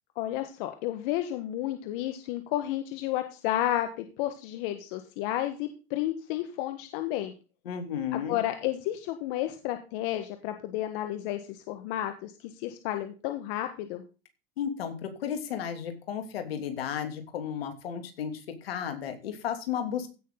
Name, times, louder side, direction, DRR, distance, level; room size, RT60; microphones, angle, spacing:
voice 1, 0.1-7.3 8.1-14.0, left 13 dB, 65° left, 7 dB, 1.6 m, -32 dB
voice 2, 7.6-8.4 14.6-20.1, left 8 dB, 90° left, 6 dB, 3.0 m, -33 dB
16.0 x 6.6 x 3.9 m, 0.32 s
supercardioid pair, 115°, 29 cm